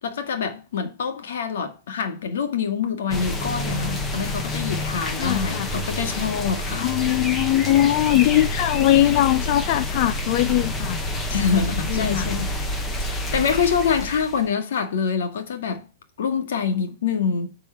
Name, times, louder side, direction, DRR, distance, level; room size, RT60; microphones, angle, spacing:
voice 1, 0.0-6.9 11.3-12.8 13.1-15.9 16.2-17.6, left 6 dB, 65° left, 2.5 m, -25 dB
sound 1, 3.1-14.5, left 1 dB, 10° left, 1.2 m, -28 dB
voice 2, 5.2-5.7 6.8-11.0 11.9-12.3, left 14 dB, 35° left, 0.5 m, -20 dB
9.6 x 5.5 x 7.2 m
hypercardioid pair, 170°, 0 cm